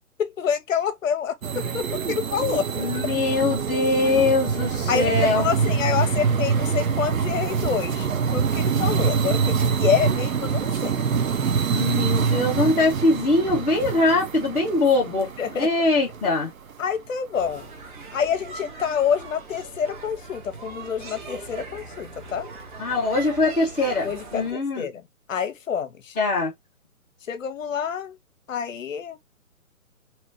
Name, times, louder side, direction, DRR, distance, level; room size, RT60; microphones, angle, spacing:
voice 1, 0.2-2.7 4.9-10.9 15.4-15.7 16.8-17.7 18.1-22.5 24.0-24.9 25.3-26.2 27.3-28.2 28.5-29.2, left 7 dB, 60° left, 0.7 m, -27 dB
tram bell, 1.4-16.7, right 6 dB, 65° right, 0.9 m, -25 dB
voice 2, 2.7-5.4 11.7-16.5 22.8-24.9 26.1-26.5, left 2 dB, 5° right, 0.5 m, -22 dB
sound 1, 17.3-24.5, right 3 dB, 35° right, 1.0 m, -40 dB
3.0 x 2.4 x 2.8 m
hypercardioid pair, 150°, 44 cm